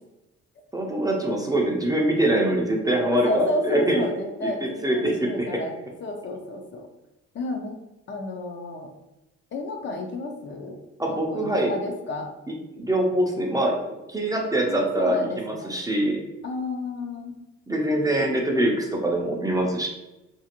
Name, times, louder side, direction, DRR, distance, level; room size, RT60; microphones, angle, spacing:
voice 1, 0.7-4.1 4.8-5.5 11.0-11.7 12.8-13.8 14.1-16.2 17.7-19.9, right 1 dB, 10° right, 0 dB, 0.5 m, -23 dB
voice 2, 3.1-5.7 6.0-6.9 7.3-7.8 8.1-8.9 9.5-10.8 11.1-12.3 14.6-15.7 16.4-17.4, left 2 dB, 40° left, 3 dB, 0.5 m, -31 dB
2.6 x 2.4 x 2.8 m, 0.98 s
cardioid pair, 85°, 29 cm